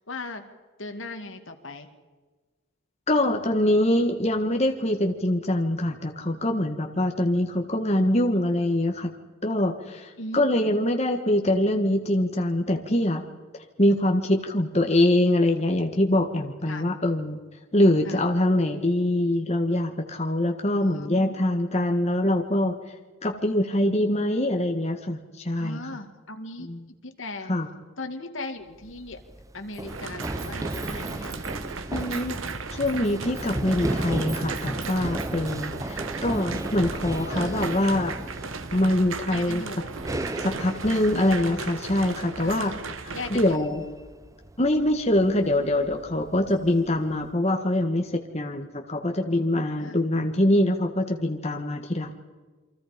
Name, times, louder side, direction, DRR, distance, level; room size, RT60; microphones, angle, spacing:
voice 1, 0.1-0.4 0.8-1.9 10.2-10.7 16.7-16.8 18.0-18.2 20.7-21.4 23.7-24.0 25.6-26.7 27.0-27.5 28.0-29.2 29.5-31.3 37.3-37.7 39.2-40.0 42.4-42.8 43.1-43.8 48.1-48.3 49.8-50.0, left 2 dB, 70° left, 7 dB, 2.3 m, -38 dB
voice 2, 3.1-9.1 9.4-13.2 13.8-17.4 17.7-22.8 23.2-25.8 26.6-26.8 27.5-27.7 31.9-32.4 32.7-38.1 38.7-39.6 40.4-42.7 43.3-43.8 44.6-52.1, left 1 dB, 30° left, 3 dB, 1.6 m, -24 dB
Run, 28.7-47.3, right 1 dB, 15° right, 0.7 m, -35 dB
sound 1, 29.9-43.6, right 4 dB, 75° right, 1.3 m, -36 dB
29.0 x 24.5 x 5.2 m, 1.3 s
head